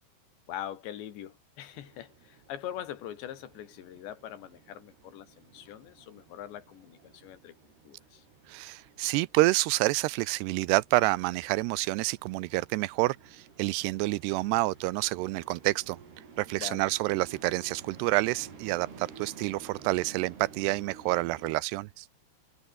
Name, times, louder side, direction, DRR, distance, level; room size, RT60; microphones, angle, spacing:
voice 1, 0.5-8.2 16.6-16.8, left 11 dB, 85° left, 4.4 m, -42 dB
sound 1, 1.7-21.5, right 5 dB, 65° right, 7.6 m, -53 dB
voice 2, 8.5-16.0 16.4-22.1, right 20 dB, 85° right, 2.6 m, -28 dB
omnidirectional pair, 5.0 m